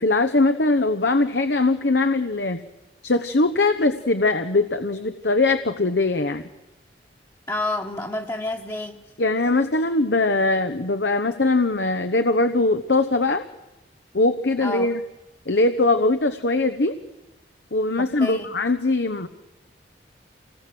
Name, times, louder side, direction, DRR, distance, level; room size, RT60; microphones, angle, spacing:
voice 1, 0.0-2.6 3.0-6.4 9.2-13.4 14.1-15.0 15.5-17.0 17.7-19.3, left 2 dB, 70° left, 8 dB, 1.1 m, -21 dB
voice 2, 7.5-9.0 14.6-14.9 18.2-18.5, left 1 dB, 20° left, 0 dB, 1.4 m, -29 dB
27.0 x 19.5 x 7.8 m, 1.0 s
head